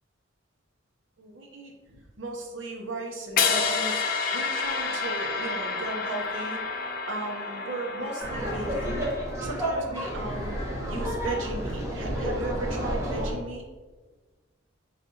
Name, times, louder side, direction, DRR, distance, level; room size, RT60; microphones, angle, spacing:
voice 1, 1.2-9.1 9.4-10.6 10.9-13.6, right 2 dB, 80° right, 0 dB, 0.8 m, -36 dB
sound 1, 3.4-9.5, left 5 dB, 45° left, 0.4 m, -29 dB
Laughter, 8.2-13.3, equal, 15° right, 0.9 m, -30 dB
5.3 x 3.3 x 2.8 m, 1.3 s
head